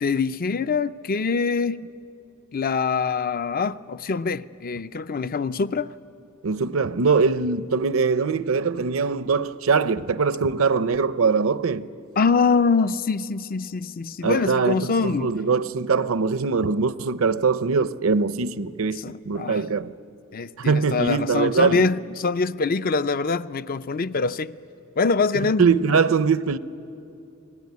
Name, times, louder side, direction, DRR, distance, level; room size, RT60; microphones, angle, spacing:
voice 1, 0.0-1.9 2.5-5.9 12.2-15.3 18.9-19.6 20.3-24.6 25.0-25.7, left 4 dB, 45° left, 0.5 m, -24 dB
voice 2, 6.4-11.9 14.2-19.9 20.6-21.8 25.6-26.6, right 5 dB, 70° right, 0.7 m, -22 dB
29.0 x 20.0 x 9.5 m
head